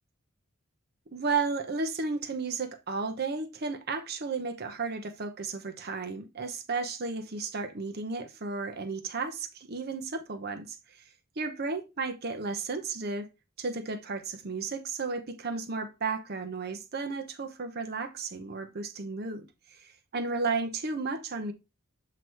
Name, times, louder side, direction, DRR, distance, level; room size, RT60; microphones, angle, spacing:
voice 1, 1.1-11.1 11.4-13.3 13.6-21.5, right 4 dB, 50° right, 0.8 m, -33 dB
7.9 x 3.0 x 4.5 m
head